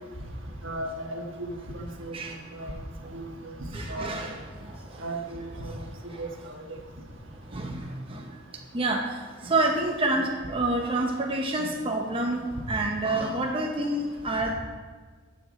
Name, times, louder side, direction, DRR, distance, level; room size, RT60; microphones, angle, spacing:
voice 1, 0.6-1.5 1.7-2.1 3.1-3.2 3.9-4.1 5.0-5.4 6.2-6.3, right 2 dB, 70° right, 2 dB, 1.4 m, -34 dB
voice 2, 3.7-5.1 5.6-6.3 7.5-8.4 8.7-14.5, right 2 dB, 30° right, 1 dB, 0.8 m, -29 dB
13.5 x 7.1 x 4.1 m, 1.5 s
head